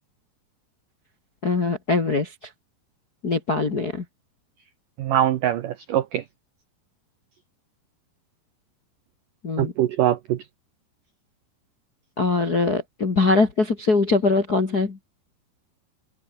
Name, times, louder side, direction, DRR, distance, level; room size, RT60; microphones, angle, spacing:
voice 1, 1.4-2.3 3.2-4.0 9.4-9.7 12.2-15.0, left 3 dB, 40° left, 1.4 m, -22 dB
voice 2, 5.0-6.2 9.6-10.4, right 12 dB, 80° right, 1.9 m, -23 dB
open air
omnidirectional pair, 5.3 m